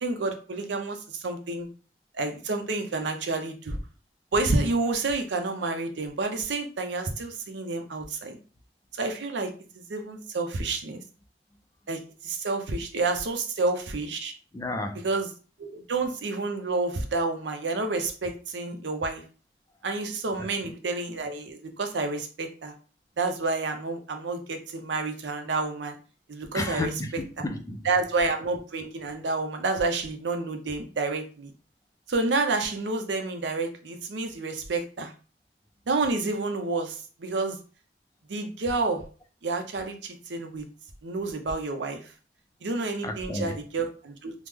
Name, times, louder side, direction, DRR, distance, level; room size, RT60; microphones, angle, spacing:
voice 1, 0.0-1.7 2.2-3.8 4.3-8.4 8.9-9.5 9.9-11.0 11.9-14.3 15.0-15.3 15.6-19.2 19.8-22.7 23.2-26.0 26.3-27.2 27.8-31.5 32.1-35.1 35.9-37.6 38.3-39.1 39.4-40.7 41.0-42.0 42.6-44.3, right 3 dB, 80° right, 0.6 m, -29 dB
voice 2, 14.5-15.0 26.5-27.8 43.0-43.6, left 2 dB, 20° left, 0.3 m, -32 dB
3.0 x 2.0 x 3.5 m
head